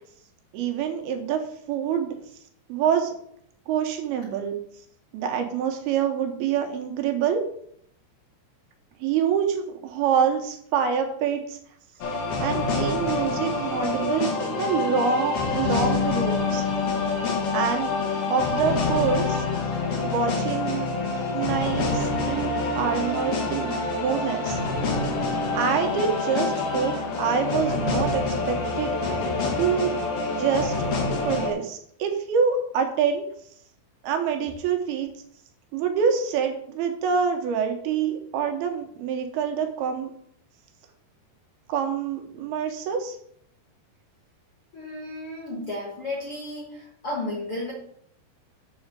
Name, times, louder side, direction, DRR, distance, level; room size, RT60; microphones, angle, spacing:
voice 1, 0.5-1.4 1.7-2.2 2.7-3.1 3.7-4.6 5.1-7.4 9.0-11.6 12.4-16.6 17.5-18.0 18.3-19.4 20.0-20.9 21.3-24.6 25.5-29.1 29.6-30.0 30.3-30.7 31.3-33.3 34.0-35.1 35.7-40.1 41.7-43.2, right 7 dB, 75° right, 4 dB, 2.7 m, -26 dB
sound 1, 12.0-31.5, left 3 dB, 85° left, 1.3 m, -26 dB
voice 2, 44.7-47.7, left 2 dB, 65° left, -3 dB, 1.3 m, -33 dB
7.2 x 4.2 x 6.6 m, 0.67 s
omnidirectional pair, 4.8 m